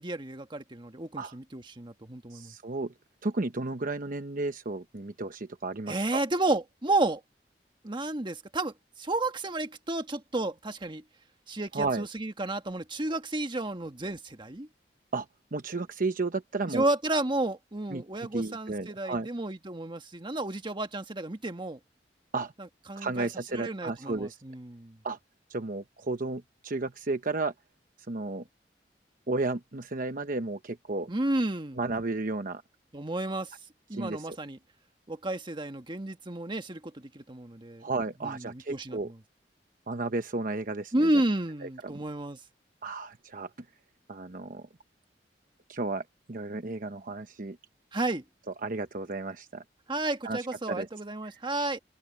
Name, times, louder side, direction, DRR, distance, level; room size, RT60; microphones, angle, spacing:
voice 1, 0.0-2.5 5.9-7.2 7.8-11.0 11.5-14.7 16.6-21.8 22.6-25.0 31.1-31.8 32.9-33.5 33.9-34.6 35.1-37.9 38.2-39.2 40.9-42.4 47.9-48.2 49.9-51.8, right 2 dB, 30° right, 1.5 m, -32 dB
voice 2, 2.3-2.9 3.2-6.2 11.7-12.1 15.1-15.3 15.5-16.9 17.9-18.0 18.3-19.3 22.3-22.5 23.0-24.3 25.0-25.2 25.5-27.5 28.1-28.4 29.3-31.1 31.8-32.6 33.9-34.3 37.8-39.1 39.9-40.9 41.8-42.0 42.8-43.5 44.1-44.7 45.7-46.0 46.3-47.6 48.6-49.6 50.2-50.4 50.7-50.9, right 3 dB, 50° right, 1.0 m, -33 dB
open air
head